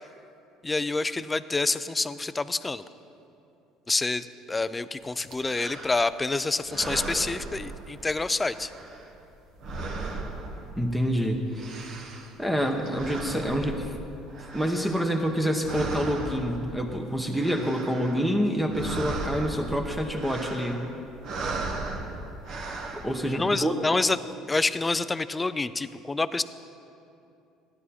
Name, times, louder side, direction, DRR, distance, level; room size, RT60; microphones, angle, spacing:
voice 1, 0.6-2.8 3.9-8.7 23.2-24.2 24.5-26.4, left 3 dB, 15° left, 14 dB, 0.4 m, -27 dB
sound 1, 5.2-6.2 6.6-8.2 8.4-11.1 11.4-15.4 15.6-16.9 17.2-18.3 18.6-23.1, right 3 dB, 60° right, 1.4 m, -37 dB
voice 2, 10.8-12.0 12.4-14.0 14.5-20.8 22.9-23.7, equal, 5° right, 2 dB, 0.9 m, -27 dB
15.0 x 11.0 x 4.2 m, 2.7 s
cardioid pair, 120°, 0 cm